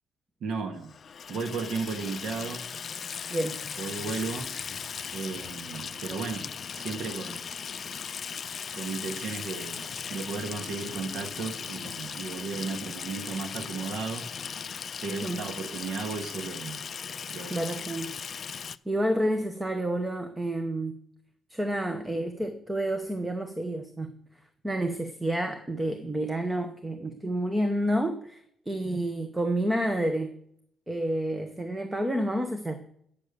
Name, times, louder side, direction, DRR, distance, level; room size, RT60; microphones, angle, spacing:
voice 1, 0.4-0.9 1.3-2.7 3.8-4.5 5.1-7.4 8.7-14.3 15.0-16.8 17.3-17.8, right 4 dB, 65° right, 4 dB, 1.3 m, -35 dB
Water tap faucet / Sink (filling or washing), 0.8-18.8, left 6 dB, 40° left, 0.3 m, -38 dB
voice 2, 17.5-18.2 18.9-21.0 21.5-24.1 24.6-30.3 30.9-32.8, right 1 dB, 10° right, 7 dB, 0.9 m, -29 dB
9.4 x 8.5 x 6.7 m, 0.71 s
cardioid pair, 140°, 0 cm